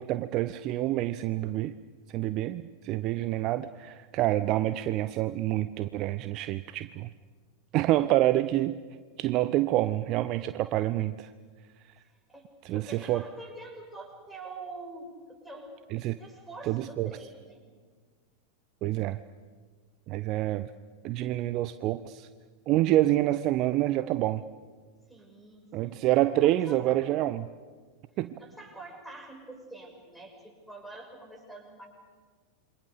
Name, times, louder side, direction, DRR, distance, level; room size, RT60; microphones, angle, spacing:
voice 1, 0.0-1.7 2.1-7.1 7.7-8.8 9.2-11.3 12.6-13.2 15.9-16.2 16.6-17.1 18.8-19.2 20.1-20.7 21.0-22.3 22.7-24.4 25.7-27.5 28.2-28.3, right 15 dB, 40° right, 13 dB, 0.7 m, -27 dB
voice 2, 12.7-15.7 16.2-17.6 25.1-26.0 26.4-27.0 28.4-31.9, right 2 dB, ahead, -1 dB, 6.6 m, -45 dB
28.0 x 24.5 x 6.8 m, 1.5 s
figure-of-eight pair, 90°, 0 cm